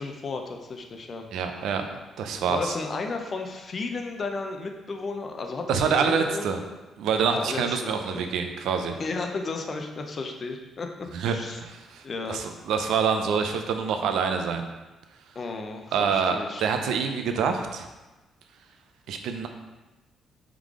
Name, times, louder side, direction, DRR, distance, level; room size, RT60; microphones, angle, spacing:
voice 1, 0.0-1.3 2.5-6.5 7.3-8.3 9.0-10.9 11.3-11.6 12.0-12.4 15.3-16.7, left 3 dB, 45° left, 4 dB, 0.5 m, -33 dB
voice 2, 1.3-1.9 2.2-2.7 5.7-6.6 7.0-9.0 11.1-11.4 11.6-14.7 15.9-17.9 19.1-19.5, right 6 dB, 80° right, 5 dB, 0.4 m, -26 dB
3.6 x 3.2 x 3.6 m, 1.1 s
cardioid pair, 90°, 0 cm